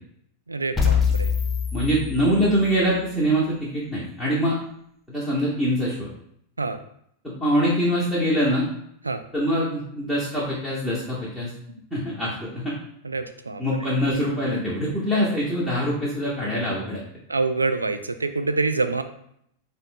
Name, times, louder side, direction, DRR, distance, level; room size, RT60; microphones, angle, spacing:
voice 1, 0.5-1.3 6.6-6.8 9.0-9.2 13.0-13.6 17.3-19.0, right 3 dB, 80° right, 8 dB, 0.3 m, -26 dB
sound 1, 0.8-2.8, left 6 dB, 10° left, 0.6 m, -24 dB
voice 2, 1.7-4.6 5.1-6.1 7.2-8.7 9.3-11.5 11.9-12.7 13.6-17.0, equal, 5° right, -8 dB, 1.0 m, -24 dB
4.1 x 2.1 x 3.8 m, 0.71 s
figure-of-eight pair, 90°, 0 cm